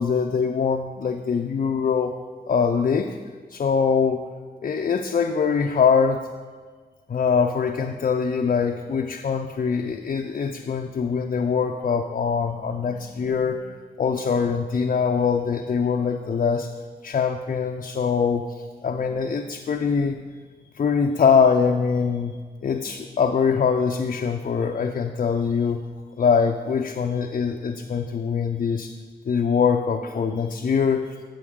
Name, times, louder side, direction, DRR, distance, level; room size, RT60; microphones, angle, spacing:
voice 1, 0.0-2.1 2.5-3.2 3.5-4.2 4.6-6.3 7.1-16.7 17.0-20.2 20.8-22.3 22.6-25.8 26.2-28.9 29.3-31.1, left 6 dB, 50° left, 4 dB, 0.5 m, -23 dB
9.7 x 6.9 x 3.7 m, 1.5 s
cardioid pair, 65°, 18 cm